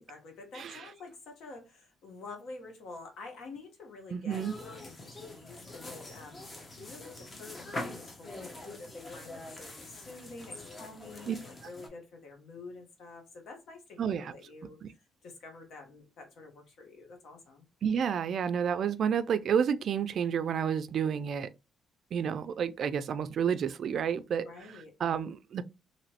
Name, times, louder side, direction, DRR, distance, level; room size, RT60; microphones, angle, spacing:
voice 1, 0.0-14.8 15.2-17.6 24.4-24.9, left 3 dB, 75° left, 1.1 m, -48 dB
voice 2, 0.5-0.8 4.1-4.5 11.3-11.4 14.0-14.3 14.8-14.9 17.8-21.5 22.1-24.5 25.0-25.6, right 7 dB, 60° right, 0.3 m, -30 dB
sound 1, 4.3-11.9, left 2 dB, 30° left, 1.0 m, -44 dB
2.9 x 2.9 x 2.8 m
cardioid pair, 90°, 0 cm